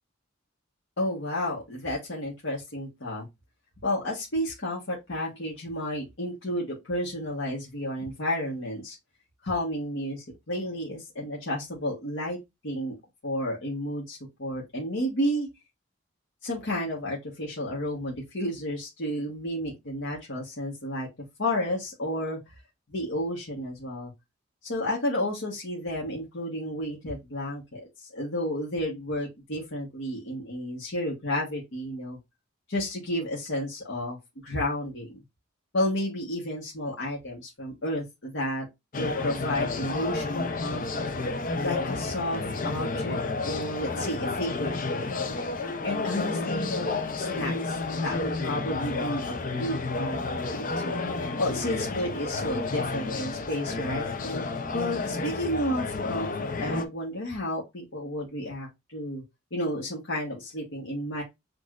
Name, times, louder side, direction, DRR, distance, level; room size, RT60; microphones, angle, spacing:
voice 1, 1.0-3.2 3.8-9.0 9.4-12.4 12.6-12.9 13.2-15.5 16.4-21.1 21.4-22.4 22.9-24.1 24.6-32.2 32.7-34.2 34.4-35.2 35.7-38.7 38.9-41.1 41.6-43.2 43.4-45.0 45.8-49.2 49.5-51.0 51.4-54.0 54.7-59.2 59.5-61.2, left 1 dB, 65° left, 1.2 m, -31 dB
sound 1, 38.9-56.9, left 3 dB, 40° left, 0.5 m, -31 dB
6.1 x 2.5 x 2.4 m
head